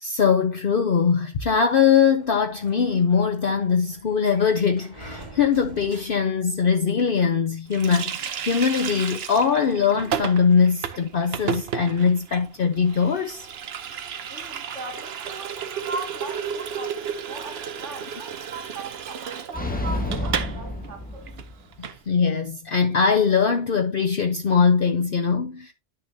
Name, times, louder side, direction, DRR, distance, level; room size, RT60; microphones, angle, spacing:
voice 1, 0.0-13.5 21.8-25.7, left 6 dB, 55° left, 0.9 m, -21 dB
Sliding door, 1.9-6.6, right 1 dB, 35° right, 2.3 m, -46 dB
Water tap faucet, 7.7-20.6 20.8-21.0 21.3-22.0, right 7 dB, 60° right, 1.0 m, -33 dB
voice 2, 14.3-21.3, right 2 dB, 85° right, 2.0 m, -39 dB
sound 1, 19.5-21.7, left 1 dB, 10° left, 1.3 m, -29 dB
10.5 x 6.5 x 2.7 m
omnidirectional pair, 1.2 m